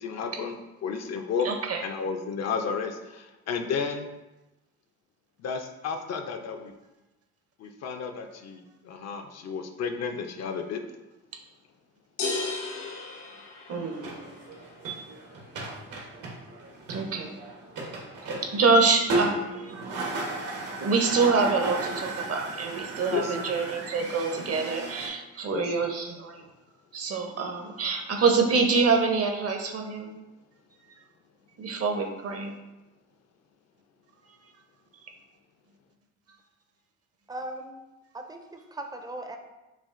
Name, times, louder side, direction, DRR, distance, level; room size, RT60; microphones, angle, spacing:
voice 1, 0.0-1.5 1.8-4.1 5.4-6.7 7.6-10.8 23.1-23.4 25.5-25.9, left 6 dB, 60° left, 5 dB, 0.5 m, -32 dB
voice 2, 1.4-1.8 13.7-14.2 14.8-15.0 16.9-17.4 18.5-19.8 20.8-26.4 26.9-30.1 31.6-32.6, right 4 dB, 50° right, 4 dB, 0.7 m, -26 dB
sound 1, 12.2-14.2, left 3 dB, 85° left, 0.8 m, -33 dB
sound 2, 13.9-25.1, right 2 dB, 80° right, 1.1 m, -35 dB
voice 3, 37.3-37.9 38.1-39.4, right 1 dB, 15° right, 5 dB, 0.4 m, -38 dB
5.7 x 2.4 x 2.5 m, 1.0 s
cardioid pair, 90°, 30 cm